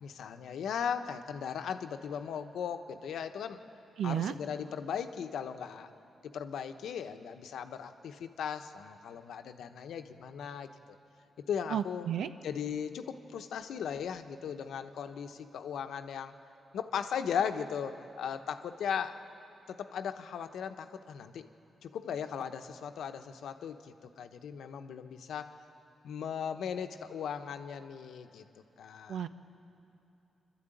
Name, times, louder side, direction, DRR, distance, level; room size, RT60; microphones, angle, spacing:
voice 1, 0.0-3.6 4.0-5.9 6.2-10.7 11.5-12.1 12.4-16.3 16.7-19.2 19.7-21.5 21.8-25.5 26.0-28.4 28.8-29.2, left 7 dB, 85° left, 7 dB, 1.0 m, -37 dB
voice 2, 4.0-4.3 11.7-12.3 29.1-29.3, right 9 dB, 85° right, 10 dB, 0.8 m, -32 dB
26.5 x 12.5 x 9.1 m, 3.0 s
cardioid pair, 90°, 0 cm